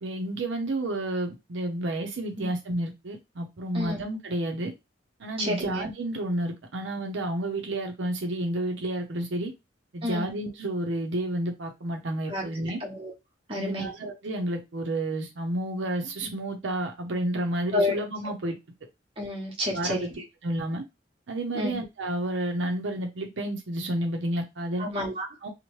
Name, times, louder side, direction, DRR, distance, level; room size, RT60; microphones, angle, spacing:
voice 1, 0.0-4.7 5.2-9.5 9.9-12.8 13.5-18.6 19.7-20.8 21.3-24.9 25.4-25.5, right 1 dB, 75° right, 0.6 m, -30 dB
voice 2, 5.4-5.8 10.0-10.3 12.3-12.4 12.8-13.1 13.5-13.9 17.7-17.9 19.2-20.1 21.5-21.8 24.8-25.3, left 1 dB, 30° right, 0.9 m, -29 dB
2.9 x 2.1 x 3.0 m
head